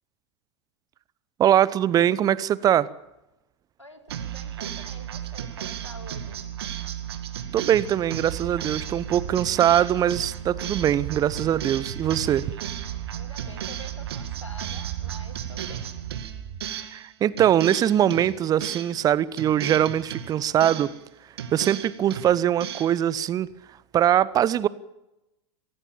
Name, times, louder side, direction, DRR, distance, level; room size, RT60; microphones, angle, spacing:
voice 1, 1.4-2.9 7.5-12.5 16.9-20.9 21.5-23.5 23.9-24.7, right 10 dB, 25° right, 0.8 m, -22 dB
voice 2, 3.8-6.5 13.1-15.9, left 1 dB, 90° left, 2.6 m, -46 dB
sound 1, 4.1-17.1 17.4-19.0 19.4-21.0 21.4-23.0, right 10 dB, 60° right, 2.1 m, -35 dB
sound 2, 8.0-16.6, right 9 dB, 45° right, 4.1 m, -40 dB
24.5 x 16.5 x 7.1 m
figure-of-eight pair, 90°, 15 cm